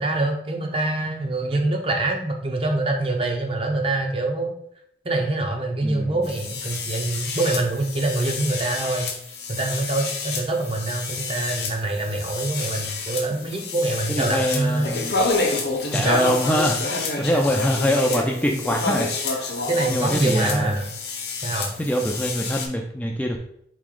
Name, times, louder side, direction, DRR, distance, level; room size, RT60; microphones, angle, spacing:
voice 1, 0.0-4.5 5.0-9.1 9.5-14.8 15.2-15.4 15.9-16.3 19.7-20.8 21.4-21.7, right 2 dB, 30° right, 3 dB, 0.6 m, -25 dB
voice 2, 5.8-6.4 14.1-15.2 15.9-19.6 19.9-20.8 21.8-23.4, equal, 10° left, 1 dB, 0.3 m, -24 dB
sound 1, 6.2-22.7, left 3 dB, 65° left, 0.8 m, -29 dB
4.1 x 3.1 x 3.7 m, 0.70 s
head